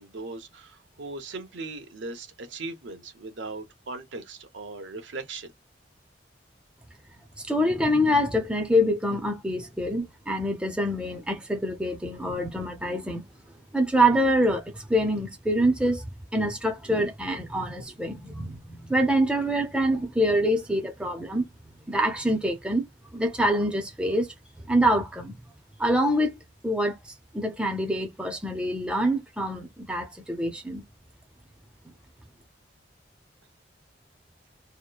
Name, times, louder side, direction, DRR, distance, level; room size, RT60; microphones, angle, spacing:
voice 1, 0.0-5.5, right 3 dB, 85° right, 0.8 m, -38 dB
voice 2, 7.4-13.2 13.7-21.4 21.9-22.8 23.1-25.4 25.8-26.4 26.6-30.8, equal, 5° right, 0.5 m, -25 dB
2.8 x 2.1 x 2.2 m
head